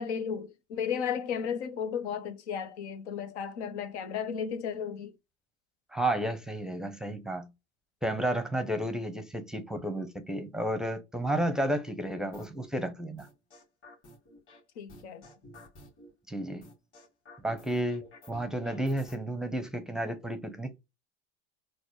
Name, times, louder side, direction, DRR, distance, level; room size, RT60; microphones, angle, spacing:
voice 1, 0.0-5.1 14.8-15.3, left 7 dB, 85° left, 0.7 m, -34 dB
voice 2, 5.9-7.5 8.0-13.3 16.3-16.7 17.4-20.8, right 1 dB, ahead, 0.5 m, -32 dB
sound 1, 12.3-12.7 13.2-14.6 14.9-16.1 16.6-19.2, left 1 dB, 40° left, 2.0 m, -51 dB
3.9 x 2.1 x 3.0 m
supercardioid pair, 100°, 33 cm